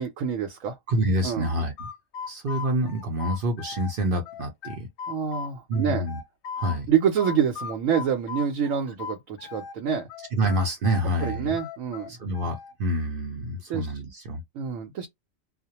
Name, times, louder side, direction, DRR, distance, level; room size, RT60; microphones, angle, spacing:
voice 1, 0.0-0.8 1.2-1.5 5.1-6.1 6.9-10.1 11.2-12.2 13.7-13.9 14.5-15.1, right 7 dB, 85° right, 1.0 m, -27 dB
voice 2, 0.9-1.9 2.3-4.9 5.7-6.2 6.6-6.9 10.3-11.5 12.1-14.4, right 1 dB, 55° right, 0.7 m, -27 dB
sound 1, 1.4-3.9 4.2-6.8 7.2-9.8 10.1-12.7, left 6 dB, 65° left, 0.8 m, -37 dB
2.3 x 2.1 x 2.8 m
omnidirectional pair, 1.3 m